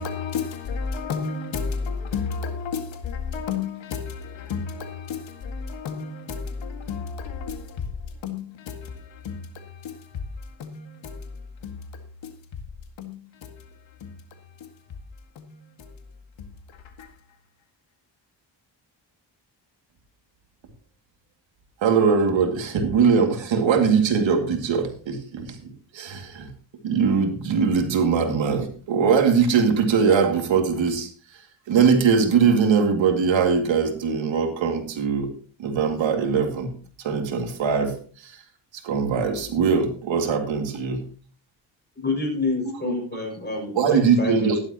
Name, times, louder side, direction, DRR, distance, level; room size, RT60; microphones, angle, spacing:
voice 1, 0.0-7.7 8.2-8.8 9.2-9.4 9.8-10.0 10.6-11.2 11.6-11.8 12.2-12.3 13.0-13.5 14.0-14.1 15.4-15.5 16.4-16.5 17.0-17.1, left 5 dB, 85° left, 2.0 m, -31 dB
voice 2, 21.8-25.5 25.9-26.5 26.8-31.1 31.7-35.3 35.6-36.7 37.0-37.9 38.2-38.3 38.8-41.0 42.8-42.9 43.7-44.6, right 6 dB, 90° right, 2.4 m, -21 dB
voice 3, 42.0-44.6, left 3 dB, 25° left, 6.3 m, -28 dB
14.5 x 11.5 x 2.9 m
cardioid pair, 95°, 44 cm